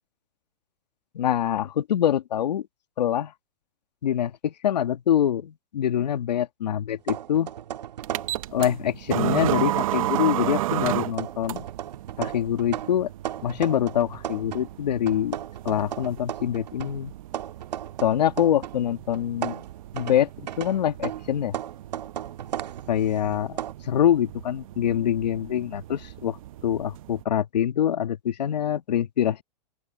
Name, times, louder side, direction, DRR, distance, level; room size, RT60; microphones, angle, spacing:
voice 1, 1.1-2.6 3.0-3.3 4.0-7.5 8.5-11.6 12.2-13.1 13.4-17.1 18.0-19.6 19.9-21.5 22.9-23.6 23.9-26.4 26.6-29.4, left 10 dB, 85° left, 1.8 m, -25 dB
sound 1, 7.0-8.8 9.1-10.5 10.9-14.7 15.1-18.8 19.1-23.7, right 11 dB, 80° right, 1.8 m, -36 dB
sound 2, 8.0-27.2, right 14 dB, 55° right, 1.1 m, -34 dB
open air
hypercardioid pair, 155°, 21 cm